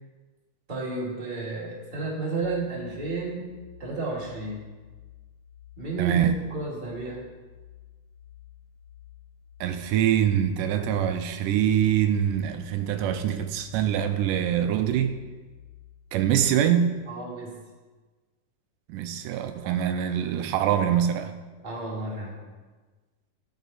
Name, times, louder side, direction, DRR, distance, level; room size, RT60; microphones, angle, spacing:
voice 1, 0.7-3.4 3.8-4.6 5.8-6.2 6.5-7.2 17.1-17.5 19.6-19.8 21.6-22.4, right 3 dB, 20° right, -4 dB, 1.7 m, -32 dB
sound 1, 2.4-16.5, left 11 dB, 40° left, 1.9 m, -51 dB
voice 2, 6.0-6.4 9.6-15.2 16.1-17.0 18.9-21.3, right 9 dB, 85° right, 8 dB, 2.1 m, -24 dB
10.0 x 7.1 x 4.1 m, 1.3 s
omnidirectional pair, 3.7 m